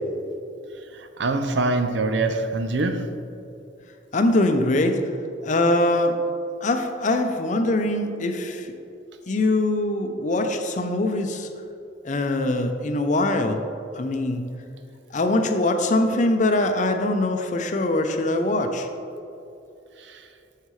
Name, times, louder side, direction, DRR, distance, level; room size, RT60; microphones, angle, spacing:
voice 1, 0.9-3.1 20.0-20.3, right 2 dB, 75° right, 7 dB, 0.6 m, -24 dB
voice 2, 4.1-5.1 5.4-6.2 6.6-8.7 9.3-11.5 12.0-13.6 14.0-14.5 15.1-18.9, left 2 dB, 40° left, 6 dB, 0.6 m, -22 dB
9.0 x 6.5 x 3.2 m, 2.7 s
head